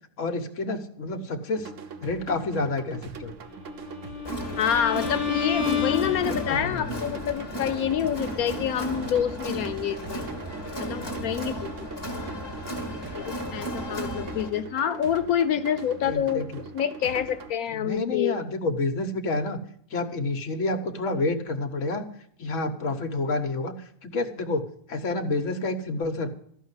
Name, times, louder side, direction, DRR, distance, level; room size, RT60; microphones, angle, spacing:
voice 1, 0.2-1.7 2.0-3.4 6.2-7.0 16.1-16.6 17.7-19.6 19.9-22.0 22.4-23.7 24.0-24.6 24.9-26.3, left 2 dB, 60° left, 6 dB, 1.4 m, -29 dB
sound 1, 1.5-17.5, right 5 dB, 65° right, 1.1 m, -42 dB
Bowed string instrument, 3.8-6.9, left 7 dB, 15° right, 2.9 m, -30 dB
Crowd, 4.2-14.5, equal, 15° left, 2.1 m, -34 dB
voice 2, 4.6-10.3 10.8-11.7 12.0-12.1 13.2-16.5 16.7-18.4, left 9 dB, 85° left, 9 dB, 1.2 m, -27 dB
13.5 x 5.6 x 9.6 m, 0.65 s
omnidirectional pair, 1.5 m